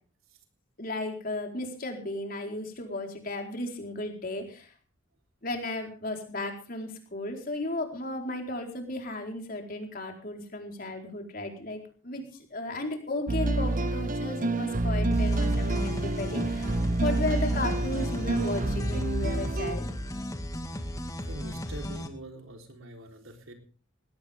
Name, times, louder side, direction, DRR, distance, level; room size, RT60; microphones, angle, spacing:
voice 1, 0.8-4.7 5.4-12.2 12.5-16.8 17.0-19.9, left 2 dB, 45° left, 2 dB, 4.3 m, -34 dB
sound 1, 13.3-19.8, right 2 dB, 40° right, 1.0 m, -28 dB
sound 2, 15.1-22.1, left 1 dB, 15° left, 1.8 m, -35 dB
voice 2, 21.3-23.5, right 1 dB, 80° right, 3 dB, 3.8 m, -44 dB
19.5 x 17.5 x 3.6 m, 0.40 s
head